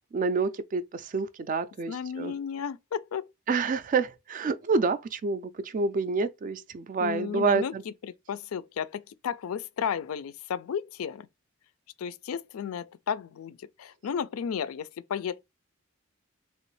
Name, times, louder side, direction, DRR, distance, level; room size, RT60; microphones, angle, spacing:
voice 1, 0.1-2.3 3.5-7.8, right 4 dB, 40° right, 0.3 m, -28 dB
voice 2, 1.9-3.3 7.0-7.7 8.0-11.3 12.0-15.4, left 7 dB, 80° left, 0.4 m, -33 dB
3.2 x 3.0 x 3.1 m
head